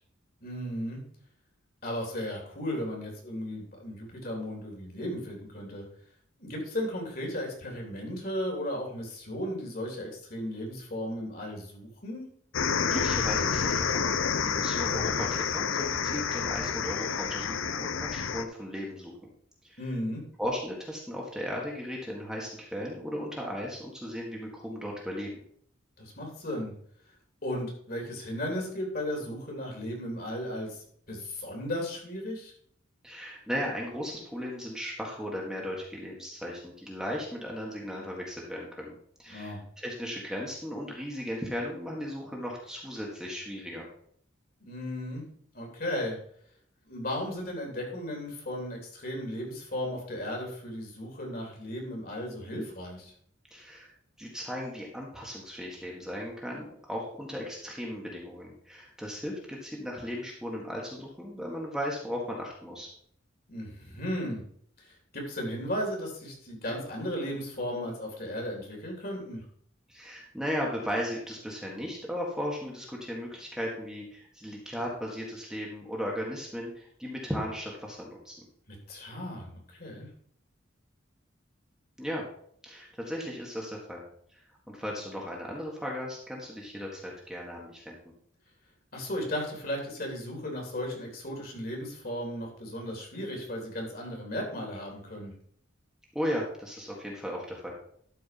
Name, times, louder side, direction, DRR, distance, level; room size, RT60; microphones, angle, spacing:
voice 1, 0.4-1.0 1.8-5.8 6.4-12.2 19.8-20.2 26.0-26.7 27.4-32.5 39.3-39.6 44.6-45.2 45.5-46.2 46.8-53.1 63.5-64.4 64.8-69.4 78.7-80.1 88.9-95.3, equal, 50° left, 0 dB, 3.3 m, -35 dB
sound 1, 12.5-18.4, left 6 dB, 90° left, 0.7 m, -29 dB
voice 2, 12.9-14.1 14.4-19.1 19.6-19.8 20.4-25.3 33.0-38.9 39.2-43.9 53.5-53.9 54.2-62.9 69.9-78.4 82.0-82.2 82.6-84.0 84.3-88.0 96.1-97.8, equal, 5° right, -3 dB, 1.7 m, -36 dB
12.0 x 4.6 x 5.9 m, 0.64 s
head